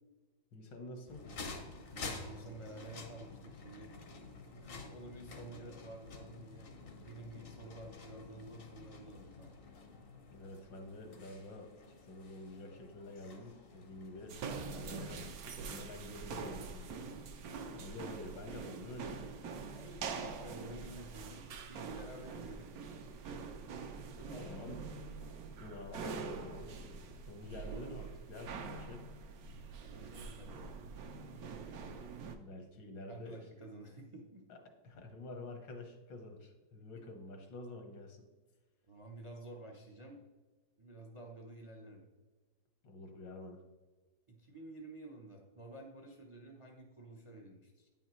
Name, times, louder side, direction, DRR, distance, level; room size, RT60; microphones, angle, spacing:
voice 1, 0.5-1.3 10.3-11.7 12.0-17.1 17.7-19.4 24.3-24.8 25.6-29.1 32.3-33.4 34.5-34.6 34.8-38.2 42.8-43.6, left 2 dB, 80° left, 3 dB, 1.8 m, -48 dB
sound 1, 1.1-15.3, left 3 dB, 50° left, 0.7 m, -50 dB
voice 2, 1.9-3.9 4.5-6.7 7.0-9.5 19.7-22.7 24.2-24.7 29.8-30.7 32.8-34.4 38.9-40.2 40.8-42.0 44.3-47.9, right 2 dB, 50° right, 1 dB, 0.3 m, -51 dB
sound 2, 14.3-32.4, right 5 dB, 65° right, 1.0 m, -45 dB
9.3 x 5.6 x 3.1 m, 1.3 s
omnidirectional pair, 2.0 m